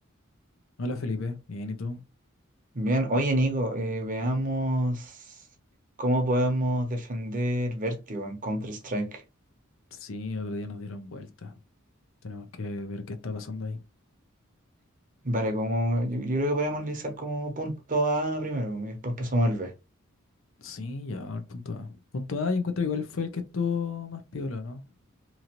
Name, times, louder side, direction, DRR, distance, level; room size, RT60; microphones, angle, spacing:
voice 1, 0.8-2.0 9.9-11.6 12.2-13.8 20.6-24.8, left 4 dB, 70° left, 0.6 m, -33 dB
voice 2, 2.7-5.2 6.0-9.2 15.2-19.7, right 1 dB, 40° right, 0.8 m, -27 dB
3.0 x 2.5 x 2.8 m
head